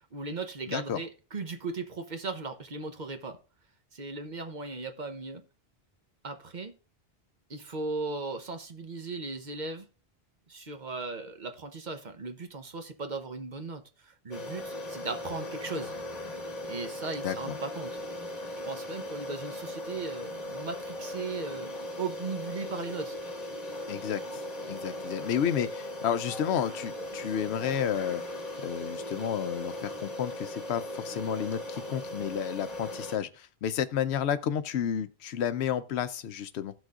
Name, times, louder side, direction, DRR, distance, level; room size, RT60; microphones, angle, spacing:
voice 1, 0.1-3.4 3.9-5.4 6.2-6.8 7.5-9.9 10.5-15.9 16.7-18.0 18.7-21.7 22.0-23.2, right 3 dB, 50° right, 1.0 m, -37 dB
voice 2, 0.7-1.0 17.2-17.5 23.9-28.2 28.6-36.7, left 9 dB, 90° left, 0.9 m, -31 dB
sound 1, 14.3-33.2, left 1 dB, 40° left, 1.1 m, -38 dB
17.0 x 6.2 x 2.4 m
omnidirectional pair, 1.1 m